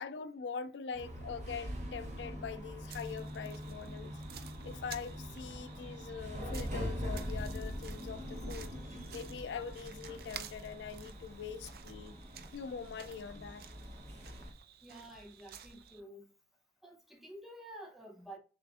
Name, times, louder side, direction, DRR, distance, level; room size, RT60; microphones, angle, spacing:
voice 1, 0.0-12.2 12.5-13.6, left 6 dB, 85° left, 0.4 m, -43 dB
sound 1, 0.9-14.5, equal, 40° right, 0.9 m, -43 dB
sound 2, 2.9-16.0, right 8 dB, 55° right, 0.4 m, -53 dB
sound 3, 4.0-9.1, equal, 75° right, 1.7 m, -60 dB
voice 2, 14.8-16.3 16.8-18.4, right 1 dB, ahead, 0.6 m, -50 dB
6.7 x 2.5 x 2.4 m
head